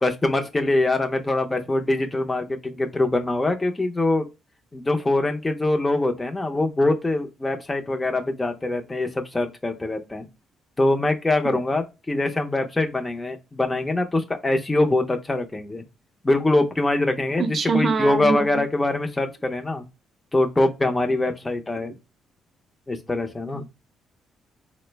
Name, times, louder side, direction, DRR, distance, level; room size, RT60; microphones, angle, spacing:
voice 1, 0.0-4.3 4.7-10.3 10.8-15.8 16.2-19.8 20.3-21.9 22.9-23.6, left 2 dB, 20° left, 0.5 m, -23 dB
voice 2, 17.4-18.4 23.5-23.6, right 4 dB, 45° right, 0.5 m, -23 dB
3.7 x 2.0 x 3.2 m
cardioid pair, 90°, 0 cm